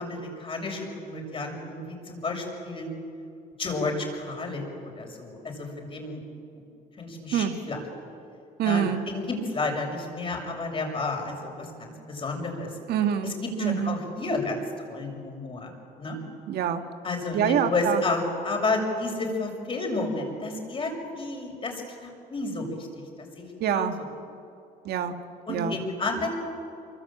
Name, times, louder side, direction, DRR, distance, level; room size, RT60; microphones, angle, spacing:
voice 1, 0.0-2.9 3.6-6.2 6.5-6.6 7.0-7.8 8.6-12.8 13.2-14.6 14.9-15.7 16.0-16.2 17.0-23.9 25.5-26.3, left 3 dB, 30° left, 2 dB, 6.8 m, -31 dB
voice 2, 8.6-9.0 12.9-13.3 13.6-14.0 16.5-16.8 17.3-18.0 23.6-24.0 24.9-25.2 25.5-25.8, right 9 dB, 70° right, 7 dB, 1.9 m, -25 dB
27.0 x 24.0 x 8.9 m, 2.5 s
cardioid pair, 110°, 17 cm